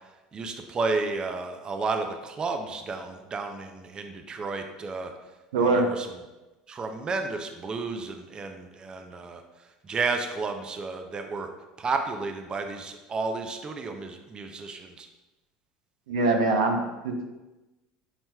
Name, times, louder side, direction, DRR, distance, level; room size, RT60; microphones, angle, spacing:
voice 1, 0.3-5.1 5.6-6.1 6.7-9.4 9.8-11.5 11.8-15.1, right 4 dB, 30° right, 6 dB, 0.4 m, -32 dB
voice 2, 5.5-5.9 16.1-17.1, right 3 dB, 85° right, 3 dB, 0.5 m, -23 dB
5.6 x 3.0 x 2.3 m, 1.1 s
hypercardioid pair, 85°, 3 cm